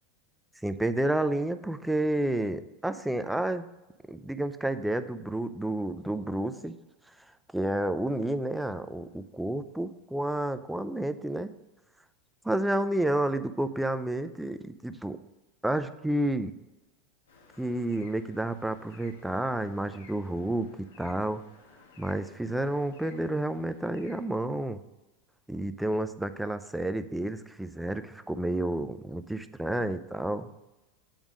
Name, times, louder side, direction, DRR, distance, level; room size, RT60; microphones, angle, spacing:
voice 1, 0.6-3.6 4.1-6.7 7.5-11.5 12.4-15.2 15.6-16.5 17.6-20.7 21.0-21.4 22.0-24.8 25.5-30.5, right 1 dB, 5° right, 11 dB, 0.5 m, -30 dB
sound 1, 17.3-24.4, left 4 dB, 85° left, 1.2 m, -56 dB
8.8 x 3.6 x 6.1 m, 1.0 s
hypercardioid pair, 95°, 0 cm